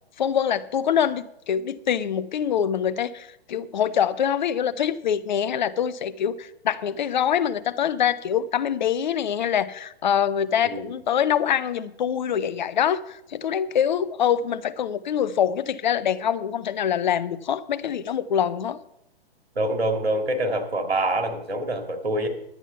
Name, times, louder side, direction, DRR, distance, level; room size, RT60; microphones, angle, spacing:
voice 1, 0.2-18.8, left 9 dB, 45° left, 0.6 m, -24 dB
voice 2, 19.6-22.3, right 1 dB, 70° right, 2.4 m, -25 dB
11.0 x 8.9 x 5.7 m
figure-of-eight pair, 120°, 32 cm